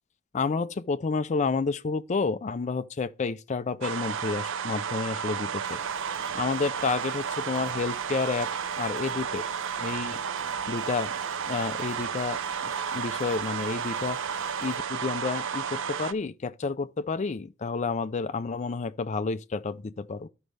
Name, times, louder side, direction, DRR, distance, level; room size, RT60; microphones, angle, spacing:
voice 1, 0.3-5.8 6.3-8.5 8.8-9.5 9.8-10.2 10.7-11.1 11.5-14.2 14.6-20.3, left 4 dB, 30° left, 0.4 m, -30 dB
sound 1, 3.8-16.1, right 7 dB, 55° right, 0.5 m, -32 dB
sound 2, 5.6-14.8, left 3 dB, 55° left, 1.2 m, -51 dB
13.0 x 5.1 x 3.2 m
head